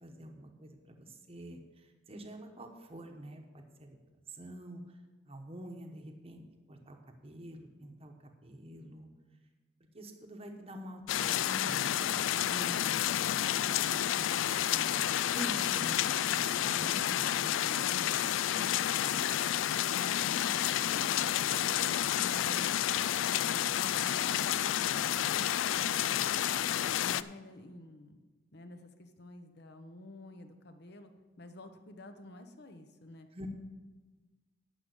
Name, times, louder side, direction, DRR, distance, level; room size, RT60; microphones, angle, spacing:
voice 1, 0.0-4.0 4.3-5.0 5.3-9.1 9.9-19.5 33.3-33.5, right 1 dB, 30° right, 3 dB, 1.0 m, -47 dB
sound 1, 11.1-27.2, left 11 dB, 80° left, 0.3 m, -30 dB
voice 2, 20.1-28.2 28.5-31.1 31.4-33.3, left 1 dB, 60° left, 7 dB, 1.0 m, -51 dB
10.5 x 5.5 x 8.1 m, 1.3 s
head